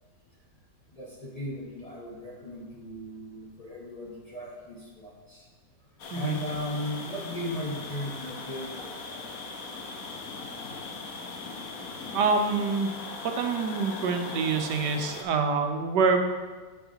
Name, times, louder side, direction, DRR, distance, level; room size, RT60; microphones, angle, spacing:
voice 1, 0.9-5.5 6.1-9.2, left 1 dB, 30° left, -4 dB, 0.9 m, -37 dB
sound 1, 6.0-15.2, left 3 dB, 60° left, 1.3 m, -39 dB
voice 2, 12.1-12.9 13.2-16.2, right 4 dB, 85° right, 5 dB, 1.3 m, -26 dB
8.2 x 7.9 x 2.9 m, 1.4 s
omnidirectional pair, 1.8 m